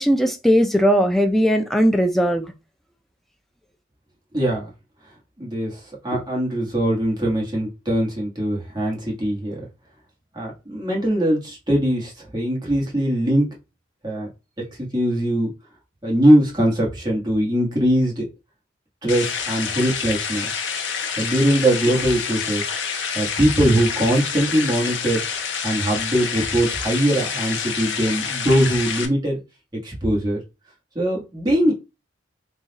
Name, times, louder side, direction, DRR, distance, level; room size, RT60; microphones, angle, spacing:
voice 1, 0.0-2.5, equal, ahead, 0.4 m, -18 dB
voice 2, 4.3-4.7 5.4-9.6 10.3-13.5 14.0-14.3 14.9-15.5 16.0-18.3 19.0-20.5 21.2-22.6 23.1-25.2 25.6-29.4 29.7-30.4 30.9-31.7, right 1 dB, 20° right, 1.3 m, -21 dB
sound 1, 19.1-29.1, left 6 dB, 65° left, 0.7 m, -28 dB
3.9 x 2.4 x 3.9 m
head